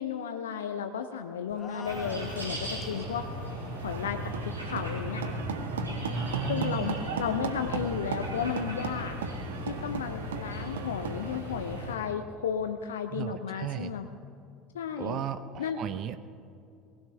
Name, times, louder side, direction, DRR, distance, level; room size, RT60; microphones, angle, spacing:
voice 1, 0.0-3.3 3.8-5.2 6.5-9.2 9.7-14.1 14.7-15.2 15.6-15.8, left 7 dB, 70° left, 8 dB, 0.5 m, -34 dB
sound 1, 1.5-3.0, left 5 dB, 30° left, 1.3 m, -45 dB
sound 2, 1.8-11.9, equal, 85° right, 3.0 m, -37 dB
sound 3, 3.8-11.4, right 6 dB, 70° right, 0.9 m, -38 dB
voice 2, 6.1-7.0 13.1-13.9 15.0-16.2, right 9 dB, 45° right, 11 dB, 0.7 m, -35 dB
19.5 x 18.5 x 3.4 m, 2.5 s
figure-of-eight pair, 65°, 0 cm